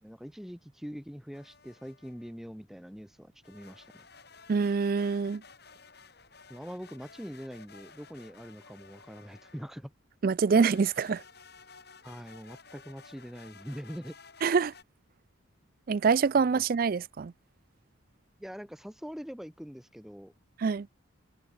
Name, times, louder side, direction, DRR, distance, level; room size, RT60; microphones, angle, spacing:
voice 1, 0.0-4.0 6.5-9.9 12.0-14.2 18.4-20.3, equal, ahead, 0.8 m, -43 dB
sound 1, 1.3-2.3 3.4-9.8 10.5-14.8, left 5 dB, 55° left, 7.0 m, -54 dB
voice 2, 4.5-5.4 10.2-11.2 14.4-14.7 15.9-17.3 20.6-20.9, right 5 dB, 45° right, 0.4 m, -25 dB
head